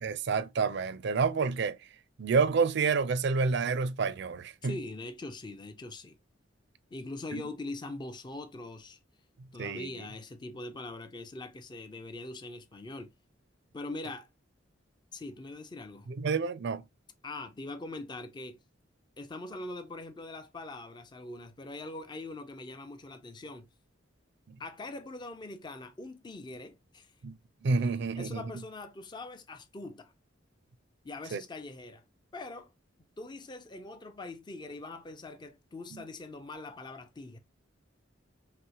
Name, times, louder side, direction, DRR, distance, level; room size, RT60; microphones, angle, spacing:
voice 1, 0.0-1.8 2.2-4.8 7.3-7.4 9.6-10.0 16.1-16.8 24.5-24.6 27.2-28.4 31.3-31.4 35.9-36.0, right 4 dB, 60° right, 0.4 m, -29 dB
voice 2, 4.6-6.2 6.9-9.0 9.5-13.1 13.7-14.3 15.1-16.1 17.2-18.6 19.2-23.7 24.6-27.1 27.8-27.9 28.2-30.1 31.0-32.0 32.3-32.7 33.2-37.4, left 2 dB, 25° left, 0.5 m, -42 dB
5.6 x 2.1 x 2.9 m
head